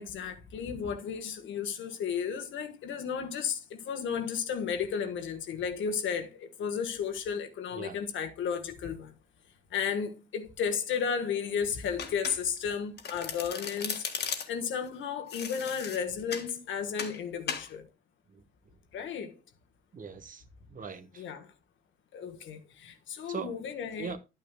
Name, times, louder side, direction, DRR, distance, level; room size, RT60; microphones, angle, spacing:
voice 1, 0.0-9.1 9.7-17.9 18.9-19.4 21.2-21.5 22.1-24.1, left 7 dB, 75° left, 1.4 m, -33 dB
voice 2, 7.7-8.0 18.3-18.4 19.9-21.2 23.2-23.5 24.0-24.2, right 6 dB, 40° right, 1.1 m, -40 dB
Domestic sounds home sounds, 12.0-12.7 13.0-14.7 15.3-16.5 17.0-17.2 17.5-17.7, left 6 dB, 55° left, 1.6 m, -36 dB
10.5 x 9.2 x 2.2 m
cardioid pair, 90°, 20 cm